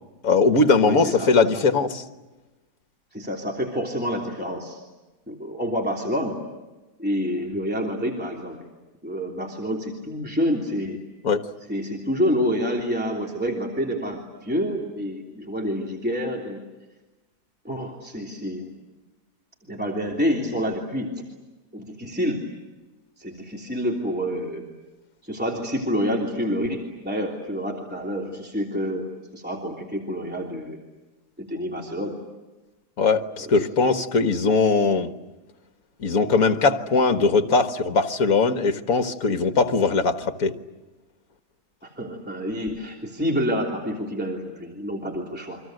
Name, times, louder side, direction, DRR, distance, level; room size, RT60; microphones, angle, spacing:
voice 1, 0.2-2.0 11.2-11.4 33.0-35.1 36.0-40.5, left 4 dB, 60° left, 7 dB, 1.8 m, -20 dB
voice 2, 0.8-1.6 3.1-4.8 5.3-6.3 7.0-8.6 9.0-11.0 11.7-16.6 17.6-18.7 19.6-21.1 21.7-22.4 23.2-24.6 25.2-29.1 29.3-30.8 31.4-32.2 33.4-33.5 41.8-45.6, equal, 5° right, -1 dB, 3.2 m, -28 dB
29.5 x 24.5 x 7.9 m, 1.1 s
omnidirectional pair, 1.7 m